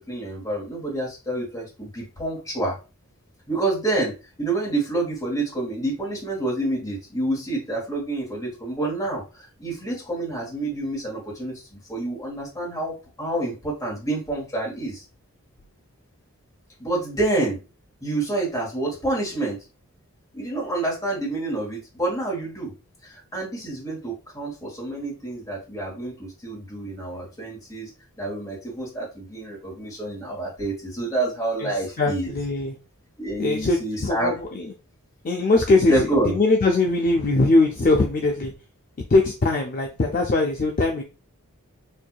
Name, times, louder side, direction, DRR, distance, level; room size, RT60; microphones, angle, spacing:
voice 1, 0.0-2.8 3.5-4.1 4.4-15.0 16.8-17.6 18.0-19.6 20.3-22.7 23.0-27.9 28.2-32.3 33.2-34.4 35.9-36.4, right 2 dB, 15° left, -4 dB, 1.4 m, -28 dB
voice 2, 31.6-32.7 33.4-34.7 35.2-38.5 39.1-41.0, left 2 dB, 40° left, 2 dB, 0.4 m, -21 dB
4.4 x 2.6 x 2.3 m, 0.32 s
head